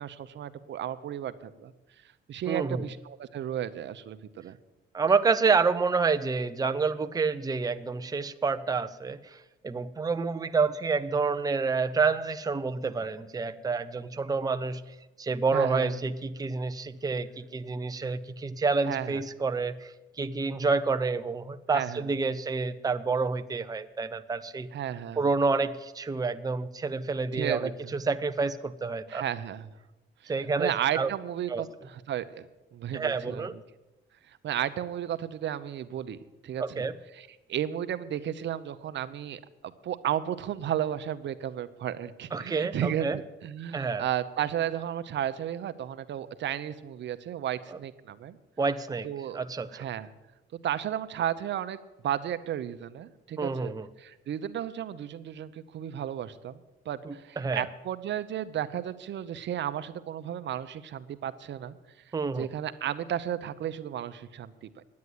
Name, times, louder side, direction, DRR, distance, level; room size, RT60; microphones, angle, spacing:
voice 1, 0.0-1.7 2.3-4.6 15.5-16.0 18.9-19.2 21.7-22.1 24.7-25.3 27.3-27.7 29.1-29.7 30.6-32.5 32.7-33.5 34.4-36.2 36.4-36.9 37.1-43.1 43.4-48.4 49.0-49.4 49.7-50.1 50.6-51.8 52.0-53.7 54.0-56.6 56.9-61.7 62.4-64.8, right 10 dB, 65° right, 12 dB, 0.8 m, -33 dB
voice 2, 2.5-2.8 4.9-14.8 15.2-19.9 20.2-24.7 25.2-29.2 30.3-31.1 31.5-31.7 32.9-33.6 36.6-37.0 42.3-43.2 43.7-44.0 47.7-47.8 48.6-49.1 49.3-49.7 53.4-53.9 57.0-57.7 62.1-62.5, right 4 dB, 20° right, 10 dB, 0.6 m, -28 dB
9.6 x 9.5 x 9.6 m, 1.1 s
cardioid pair, 90°, 20 cm